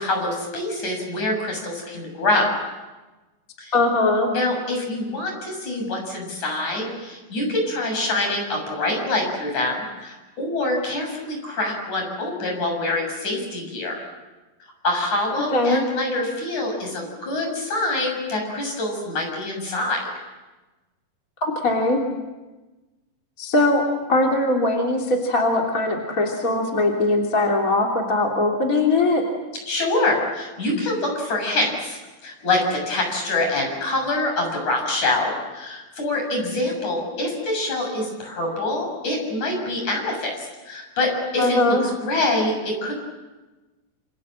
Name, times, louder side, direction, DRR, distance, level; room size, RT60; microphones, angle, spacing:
voice 1, 0.0-2.5 3.6-3.7 4.3-14.0 14.8-20.0 29.7-42.9, left 2 dB, 50° left, 2 dB, 8.6 m, -25 dB
voice 2, 3.7-4.3 15.5-15.8 21.4-22.0 23.4-23.8 24.1-29.2 41.4-41.8, left 2 dB, 25° left, 0 dB, 3.0 m, -20 dB
28.0 x 27.5 x 7.6 m, 1.2 s
omnidirectional pair, 4.2 m